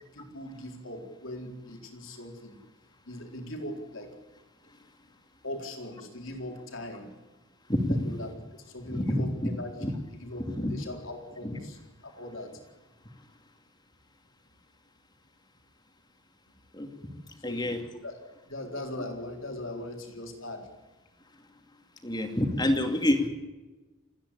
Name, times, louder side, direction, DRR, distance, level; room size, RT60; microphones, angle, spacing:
voice 1, 0.1-2.6 3.1-4.1 5.4-7.1 7.9-10.4 10.7-11.8 12.0-12.5 17.4-17.7 18.0-18.2 18.5-20.7, left 1 dB, 65° left, 3 dB, 4.1 m, -40 dB
voice 2, 7.7-8.1 8.9-9.5 9.8-9.9 10.6-10.7 11.4-11.6 16.7-16.9 17.4-17.8 22.0-23.3, left 1 dB, 20° left, 5 dB, 2.6 m, -27 dB
29.0 x 10.0 x 10.0 m, 1.2 s
head